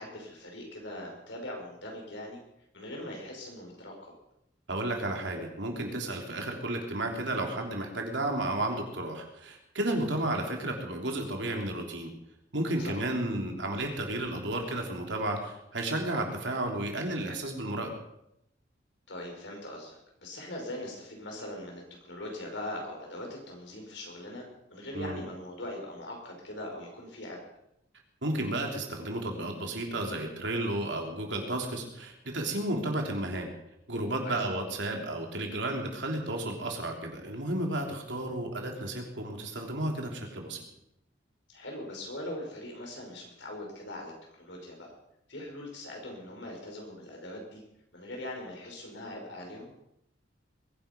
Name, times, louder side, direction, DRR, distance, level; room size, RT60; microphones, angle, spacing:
voice 1, 0.0-2.4 2.7-4.1 12.8-13.0 19.1-27.4 34.2-34.4 41.5-44.9 45.3-47.6 47.9-49.7, left 1 dB, 80° left, 0 dB, 5.5 m, -41 dB
voice 2, 4.7-12.1 12.5-17.9 24.9-25.2 28.2-33.5 33.9-40.6, right 1 dB, 80° right, 2 dB, 3.3 m, -32 dB
21.5 x 10.5 x 5.3 m, 0.80 s
head